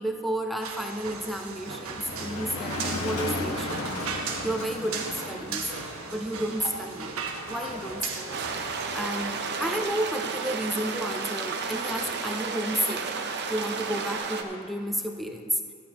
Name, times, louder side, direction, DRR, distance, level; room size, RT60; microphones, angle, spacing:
voice 1, 0.0-3.8 4.4-5.7 6.1-7.2 7.5-8.4 8.9-13.0 13.5-15.6, right 1 dB, ahead, 3 dB, 0.6 m, -31 dB
sound 1, 0.6-9.8, right 5 dB, 65° right, 1.1 m, -37 dB
Motor vehicle (road), 1.5-14.2, left 2 dB, 65° left, 1.4 m, -38 dB
sound 2, 8.3-14.4, right 5 dB, 50° right, 0.8 m, -32 dB
13.0 x 11.5 x 3.0 m, 2.3 s
head